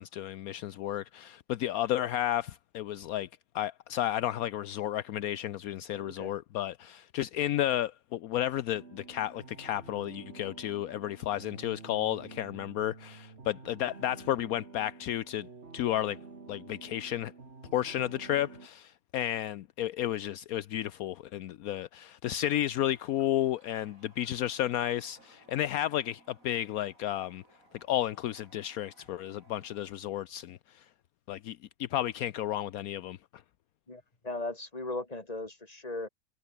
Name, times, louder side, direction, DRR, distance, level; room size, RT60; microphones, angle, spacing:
voice 1, 0.0-3.3 3.5-15.5 15.7-16.2 16.5-17.3 17.7-27.4 27.9-30.8 31.3-33.2, left 12 dB, 75° left, 1.1 m, -32 dB
voice 2, 5.9-6.3 33.9-36.1, left 2 dB, 25° left, 3.2 m, -38 dB
sound 1, 8.7-18.7, right 4 dB, 45° right, 2.5 m, -49 dB
Toilet flush, 22.9-29.9, right 1 dB, 65° right, 8.1 m, -62 dB
omnidirectional pair, 1.6 m